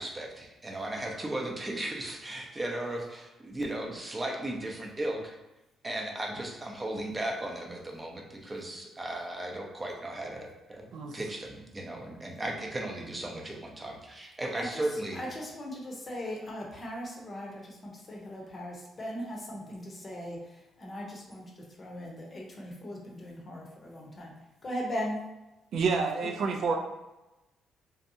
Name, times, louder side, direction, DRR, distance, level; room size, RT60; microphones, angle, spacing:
voice 1, 0.0-5.4 5.8-10.9 11.1-15.2, right 1 dB, 20° right, 0 dB, 0.5 m, -36 dB
voice 2, 15.1-24.3 24.6-25.2, equal, 35° left, -2 dB, 0.7 m, -39 dB
voice 3, 25.7-26.8, right 5 dB, 70° right, 2 dB, 0.3 m, -28 dB
2.6 x 2.2 x 2.6 m, 0.99 s
cardioid pair, 90°, 0 cm